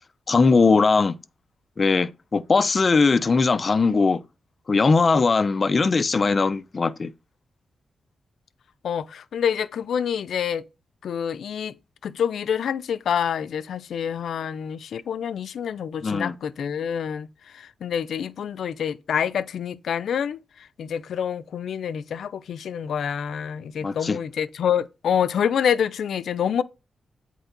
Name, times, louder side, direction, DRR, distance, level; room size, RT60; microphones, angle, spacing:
voice 1, 0.3-1.2 1.8-4.2 4.7-7.1 16.0-16.3 23.8-24.2, left 4 dB, 40° left, 0.6 m, -20 dB
voice 2, 8.8-10.6 11.0-11.7 12.0-17.3 17.5-20.4 20.8-26.6, left 8 dB, 80° left, 0.5 m, -27 dB
8.7 x 4.6 x 3.9 m
cardioid pair, 90°, 0 cm